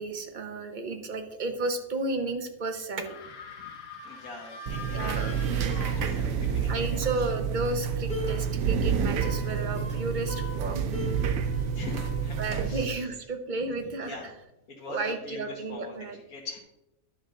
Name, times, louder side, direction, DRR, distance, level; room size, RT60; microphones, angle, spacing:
voice 1, 0.0-3.1 4.9-5.3 5.6-5.8 6.7-10.8 12.4-14.2 14.9-16.2, right 3 dB, 40° right, 7 dB, 0.9 m, -33 dB
sound 1, 3.0-6.6, left 5 dB, 65° left, 1.3 m, -43 dB
voice 2, 4.0-5.4 5.7-7.3 11.7-13.2 13.6-13.7 14.0-14.3 14.7-16.6, left 3 dB, 85° left, -3 dB, 1.8 m, -43 dB
sound 2, 4.7-12.9, right 6 dB, 85° right, 1.2 m, -29 dB
sound 3, 8.1-12.3, left 1 dB, 5° left, 1.7 m, -40 dB
10.5 x 6.3 x 3.8 m, 0.90 s
omnidirectional pair, 1.5 m